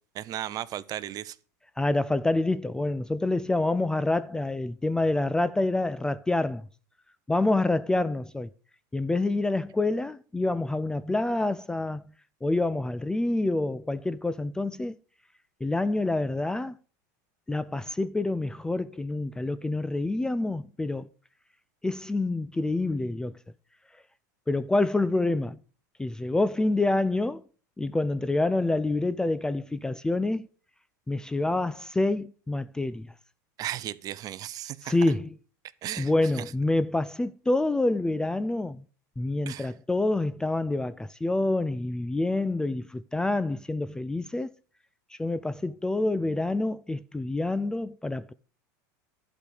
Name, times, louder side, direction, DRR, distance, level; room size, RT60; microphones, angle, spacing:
voice 1, 0.1-1.4 33.6-34.9 35.8-36.4 39.5-39.7, right 12 dB, 40° right, 0.7 m, -35 dB
voice 2, 1.8-6.7 7.3-8.5 8.9-12.1 12.4-15.0 15.6-16.8 17.5-21.1 21.8-23.4 24.5-25.6 26.0-27.4 27.8-30.5 31.1-33.1 34.8-35.3 36.0-38.8 39.2-44.5 45.1-48.3, left 2 dB, 5° left, 0.4 m, -27 dB
11.5 x 5.1 x 8.1 m
supercardioid pair, 115°, 10 cm